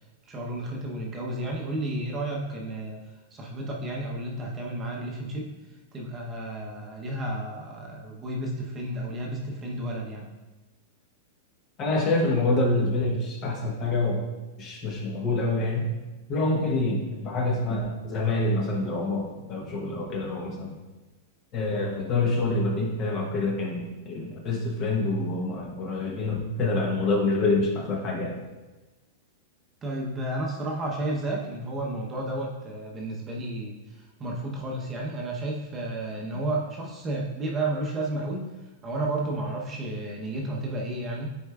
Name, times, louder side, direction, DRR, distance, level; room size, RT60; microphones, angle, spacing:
voice 1, 0.3-3.0 3.3-5.5 5.9-10.3 29.8-38.5 38.8-41.3, right 1 dB, 20° right, -2 dB, 0.9 m, -32 dB
voice 2, 11.8-14.3 14.6-15.9 16.3-19.2 19.5-20.8 21.5-28.4, left 2 dB, 30° left, 1 dB, 1.0 m, -26 dB
9.8 x 4.5 x 2.4 m, 1.1 s
supercardioid pair, 155°, 0 cm